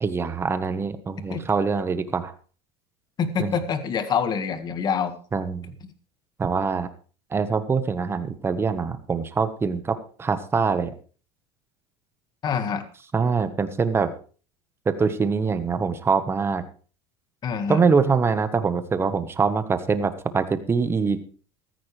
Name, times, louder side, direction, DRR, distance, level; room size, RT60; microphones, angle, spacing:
voice 1, 0.0-2.3 3.4-3.6 5.3-5.7 6.4-6.9 7.3-10.9 13.1-14.1 14.8-16.6 17.7-21.2, right 5 dB, 20° right, 11 dB, 1.3 m, -24 dB
voice 2, 3.2-5.1 12.4-12.8 17.4-17.8, left 6 dB, 35° left, 10 dB, 1.7 m, -25 dB
14.5 x 14.0 x 3.3 m, 0.39 s
supercardioid pair, 120°, 13 cm